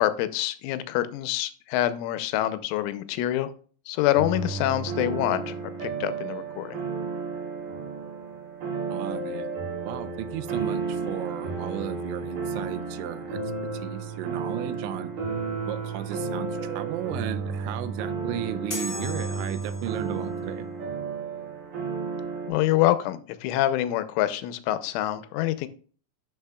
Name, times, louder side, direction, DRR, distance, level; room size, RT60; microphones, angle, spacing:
voice 1, 0.0-3.5 3.9-6.8 22.5-25.7, left 14 dB, 90° left, 12 dB, 3.1 m, -26 dB
sound 1, 4.2-22.5, right 4 dB, 60° right, 4.6 m, -32 dB
voice 2, 8.9-9.5 9.8-13.4 13.7-15.1 15.7-20.7, right 12 dB, 85° right, 12 dB, 3.0 m, -35 dB
sound 2, 18.7-20.2, left 2 dB, 35° left, 0.8 m, -35 dB
12.0 x 5.9 x 2.3 m, 0.42 s
omnidirectional pair, 5.4 m